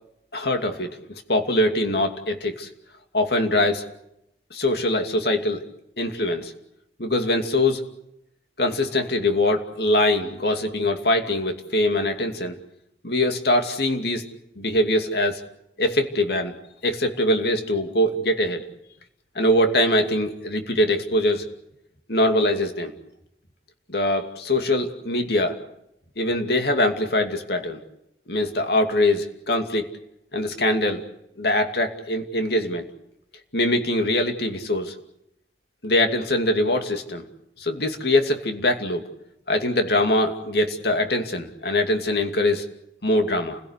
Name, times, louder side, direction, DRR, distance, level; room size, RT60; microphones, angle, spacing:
voice 1, 0.3-2.7 3.1-3.8 4.5-5.6 6.0-6.5 7.0-7.8 8.6-12.6 13.0-14.2 14.6-15.4 15.8-16.6 16.8-18.6 19.3-21.4 22.1-22.9 23.9-25.6 26.2-27.8 28.3-29.9 30.3-31.0 31.4-32.9 33.5-34.9 35.8-37.3 37.6-39.0 39.5-42.7 43.0-43.6, left 1 dB, 60° left, 5 dB, 2.6 m, -23 dB
29.5 x 16.5 x 8.3 m, 0.80 s
head